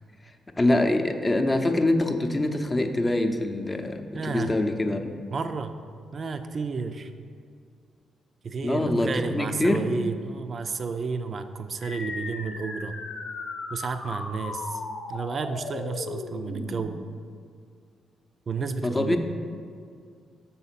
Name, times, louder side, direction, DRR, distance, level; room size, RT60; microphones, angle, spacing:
voice 1, 0.6-5.2 8.6-9.8 18.8-19.2, left 1 dB, 25° left, 5 dB, 0.6 m, -24 dB
voice 2, 4.1-4.5 5.3-5.8 6.1-7.1 8.4-12.9 13.7-14.8 15.1-17.0 18.5-19.2, right 4 dB, 50° right, 9 dB, 0.4 m, -31 dB
sound 1, 11.8-16.8, left 3 dB, 75° left, 0.8 m, -36 dB
5.6 x 4.1 x 5.7 m, 2.2 s
hypercardioid pair, 50°, 0 cm